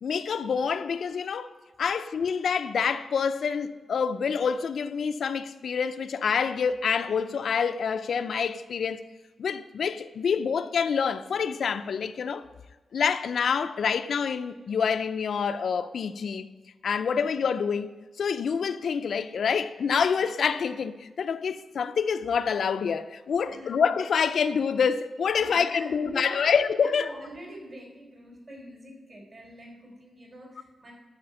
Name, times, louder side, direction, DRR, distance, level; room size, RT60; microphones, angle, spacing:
voice 1, 0.0-1.5 1.8-9.0 9.4-12.4 12.9-16.5 16.8-17.9 18.2-27.1, left 6 dB, 65° left, 0.4 m, -27 dB
voice 2, 23.4-23.8 25.3-30.9, right 1 dB, 40° right, 3.6 m, -44 dB
12.0 x 5.0 x 6.9 m
wide cardioid pair, 150°, 0 cm